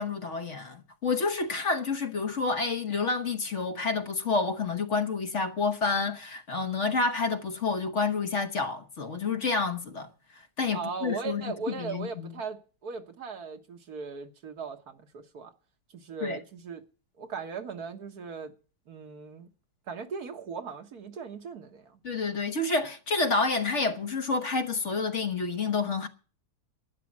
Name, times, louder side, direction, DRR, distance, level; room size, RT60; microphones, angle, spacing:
voice 1, 0.0-10.1 10.6-12.3 16.2-16.4 22.0-26.1, left 4 dB, 45° left, 1.4 m, -29 dB
voice 2, 10.7-15.5 15.9-16.8 17.2-18.5 18.9-19.5 19.9-22.0, right 5 dB, 65° right, 1.8 m, -38 dB
12.0 x 10.0 x 7.3 m
omnidirectional pair, 1.8 m